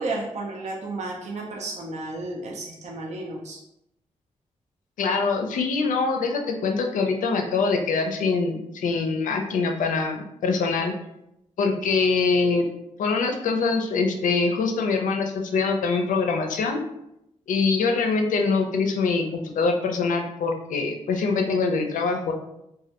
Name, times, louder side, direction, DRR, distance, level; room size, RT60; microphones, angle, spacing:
voice 1, 0.0-3.6, right 2 dB, 55° right, -1 dB, 0.5 m, -32 dB
voice 2, 5.0-10.9 11.6-12.7 13.0-16.8 17.5-22.3, left 4 dB, 75° left, 3 dB, 0.4 m, -24 dB
2.2 x 2.1 x 2.8 m, 0.83 s
supercardioid pair, 45°, 14 cm